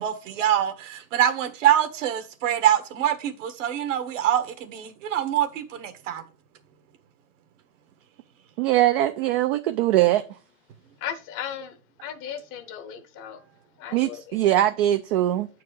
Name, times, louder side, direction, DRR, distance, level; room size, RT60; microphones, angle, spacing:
voice 1, 0.0-6.2, right 11 dB, 60° right, 1.6 m, -24 dB
voice 2, 8.6-10.2 13.9-15.5, right 14 dB, 45° right, 0.6 m, -21 dB
voice 3, 11.0-13.4 13.8-14.4, left 9 dB, 30° left, 0.8 m, -36 dB
8.4 x 4.7 x 4.7 m
hypercardioid pair, 135°, 42 cm